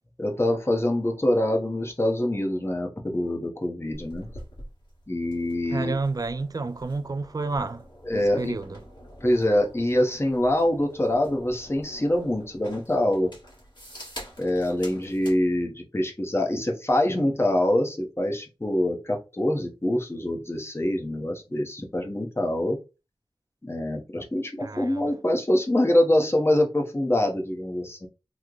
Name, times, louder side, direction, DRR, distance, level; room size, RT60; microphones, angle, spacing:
voice 1, 0.2-4.3 5.1-6.0 8.0-8.6 9.2-13.3 14.4-22.8 23.6-28.1, left 1 dB, 30° left, 0.8 m, -25 dB
sound 1, 3.9-15.4, equal, 55° left, 1.4 m, -46 dB
voice 2, 5.7-7.8 8.1-8.8 24.6-25.1, right 3 dB, 45° right, 0.4 m, -30 dB
3.1 x 2.1 x 3.8 m
wide cardioid pair, 60°, 9 cm